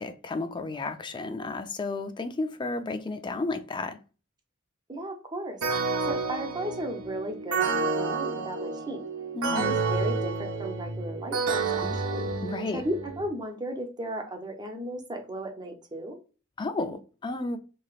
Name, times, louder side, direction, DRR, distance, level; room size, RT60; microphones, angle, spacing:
voice 1, 0.0-4.0 9.3-9.7 11.8-12.0 12.4-12.8 16.6-17.6, left 3 dB, 20° left, 0.3 m, -32 dB
voice 2, 4.9-5.6 6.1-9.0 9.5-11.8 12.1-12.2 12.7-16.2, right 1 dB, 20° right, 0.6 m, -35 dB
sound 1, 5.6-13.3, right 4 dB, 75° right, 0.7 m, -30 dB
3.1 x 2.8 x 2.4 m
head